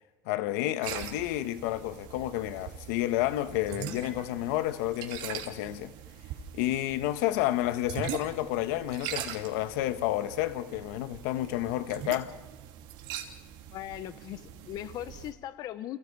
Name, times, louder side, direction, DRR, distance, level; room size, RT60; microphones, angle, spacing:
voice 1, 0.3-5.9 6.5-12.3, left 14 dB, 80° left, 1.3 m, -30 dB
sound 1, 0.8-15.3, right 10 dB, 65° right, 2.9 m, -42 dB
voice 2, 13.7-16.0, left 12 dB, 50° left, 1.0 m, -39 dB
29.5 x 29.0 x 4.8 m
supercardioid pair, 120°, 9 cm